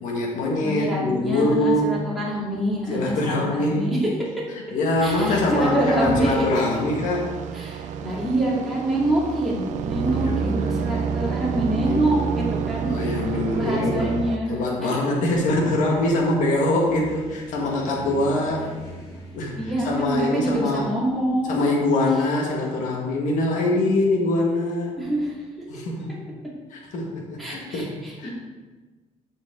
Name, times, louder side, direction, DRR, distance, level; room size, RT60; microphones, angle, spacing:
voice 1, 0.0-2.1 2.9-3.9 4.7-7.3 10.0-10.7 11.8-12.0 12.8-14.1 14.5-18.6 19.3-19.6 19.8-20.9 21.5-24.9 25.7-26.1 26.7-27.9 28.2-28.3, left 2 dB, 75° left, -1 dB, 1.9 m, -23 dB
voice 2, 0.6-4.3 5.0-6.6 7.5-13.1 13.5-14.5 14.8-15.0 19.6-21.7 25.0-25.4 27.4-28.3, right 1 dB, ahead, -7 dB, 2.5 m, -26 dB
sound 1, 5.0-14.4, right 6 dB, 65° right, 0.6 m, -29 dB
sound 2, 15.2-22.3, right 1 dB, 30° left, 3.2 m, -43 dB
13.5 x 5.3 x 3.9 m, 1.3 s
cardioid pair, 160°, 13 cm